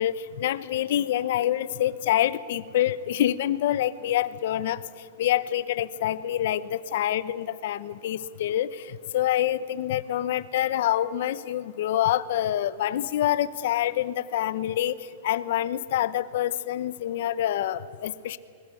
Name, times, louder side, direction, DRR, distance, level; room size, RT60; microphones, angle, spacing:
voice 1, 0.0-18.4, left 12 dB, 55° left, 16 dB, 0.8 m, -26 dB
21.0 x 20.5 x 8.4 m, 2.3 s
supercardioid pair, 170°, 0 cm